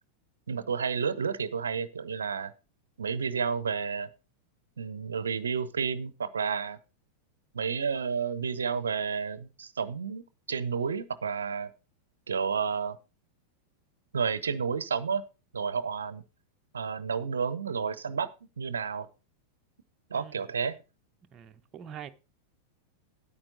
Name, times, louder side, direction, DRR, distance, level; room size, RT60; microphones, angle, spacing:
voice 1, 0.5-2.5 3.0-4.1 4.8-6.8 7.5-10.2 10.5-11.7 12.3-13.0 14.1-15.2 15.5-16.2 16.7-18.3 18.6-19.1 20.1-20.8, right 6 dB, 70° right, 0.7 m, -31 dB
voice 2, 20.1-20.5 21.3-22.1, right 9 dB, 25° right, 0.8 m, -45 dB
10.0 x 8.8 x 3.9 m
figure-of-eight pair, 90°, 0 cm